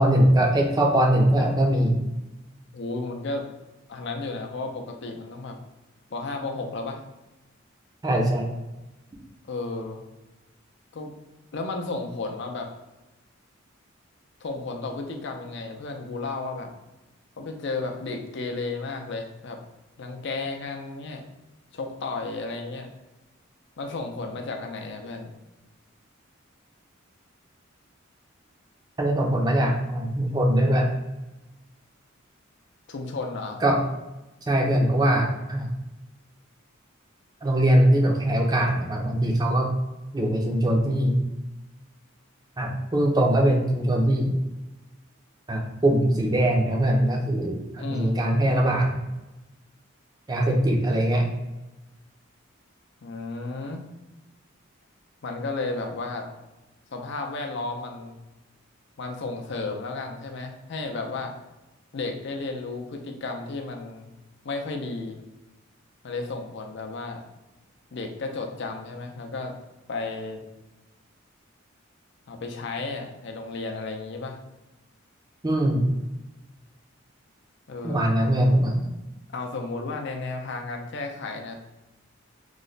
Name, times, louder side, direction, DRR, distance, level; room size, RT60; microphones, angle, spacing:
voice 1, 0.0-2.0 8.0-8.5 29.0-30.9 33.6-33.8 34.5-35.7 37.4-39.7 40.1-41.2 42.6-44.4 45.5-49.0 50.3-51.2 75.4-75.9 77.8-78.9, right 1 dB, 20° right, 1 dB, 0.5 m, -21 dB
voice 2, 2.7-3.5 3.9-5.6 6.1-7.0 9.5-10.0 10.9-11.1 11.5-12.7 14.4-16.7 17.4-19.6 20.0-21.2 21.7-22.9 23.8-25.3 32.9-33.6 47.8-48.2 53.0-53.9 55.2-56.3 56.9-58.2 59.0-61.3 61.9-64.1 64.4-65.2 66.0-67.2 67.9-69.6 69.9-70.4 72.3-74.4 77.7-78.1 79.3-81.6, left 3 dB, 60° left, 3 dB, 0.5 m, -33 dB
3.1 x 2.1 x 3.8 m, 1.0 s
head